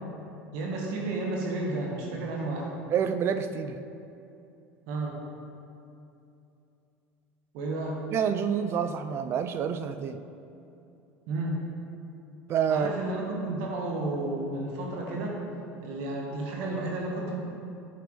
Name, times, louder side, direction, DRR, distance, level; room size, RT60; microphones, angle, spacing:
voice 1, 0.5-2.7 4.9-5.2 7.5-8.0 11.3-11.6 12.7-15.4 15.8-17.4, right 2 dB, 70° right, -2 dB, 1.3 m, -32 dB
voice 2, 2.9-3.8 8.1-10.2 12.5-12.9, right 7 dB, 45° right, 9 dB, 0.4 m, -28 dB
8.1 x 5.8 x 3.1 m, 2.7 s
supercardioid pair, 95°, 6 cm